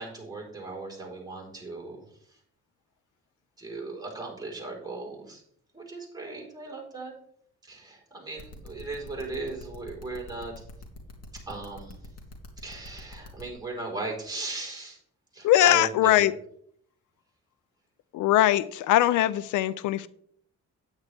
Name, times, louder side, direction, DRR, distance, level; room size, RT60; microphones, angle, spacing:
voice 1, 0.0-2.4 3.6-5.4 5.7-7.1 7.6-10.6 11.3-11.9 12.6-15.0 15.3-16.3, right 3 dB, 15° right, 4.5 m, -37 dB
sound 1, 8.4-13.4, left 3 dB, 55° left, 2.7 m, -45 dB
voice 2, 15.4-16.3 18.1-20.1, left 13 dB, 80° left, 0.5 m, -21 dB
9.7 x 9.2 x 3.4 m
cardioid pair, 90°, 30 cm